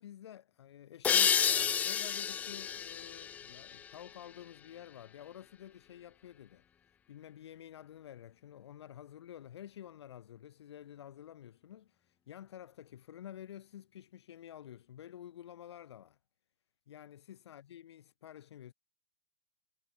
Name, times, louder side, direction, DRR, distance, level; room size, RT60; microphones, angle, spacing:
voice 1, 0.0-6.6 7.1-16.2 16.9-18.7, left 11 dB, 75° left, 3.5 m, -50 dB
sound 1, 1.0-4.4, left 8 dB, 10° left, 0.4 m, -31 dB
supercardioid pair, 165°, 14 cm